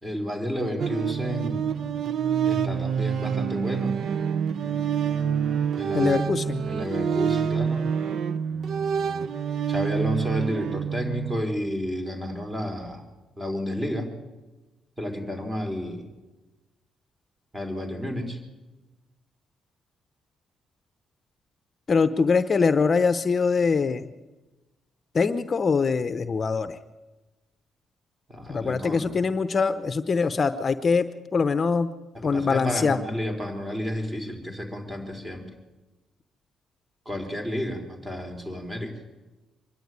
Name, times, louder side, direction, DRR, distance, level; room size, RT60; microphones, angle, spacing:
voice 1, 0.0-1.7 2.4-4.0 5.8-6.3 6.6-7.9 9.7-13.0 13.4-14.1 15.0-16.1 17.5-18.4 28.3-29.2 32.1-35.5 37.1-39.0, left 1 dB, 15° right, 4 dB, 4.2 m, -31 dB
sound 1, 0.8-11.4, right 7 dB, 65° right, 0.7 m, -27 dB
voice 2, 5.9-6.7 21.9-24.1 25.1-26.8 28.5-31.9 32.2-33.0, left 5 dB, 40° left, 12 dB, 0.8 m, -23 dB
24.5 x 11.0 x 9.5 m, 1.1 s
cardioid pair, 90°, 0 cm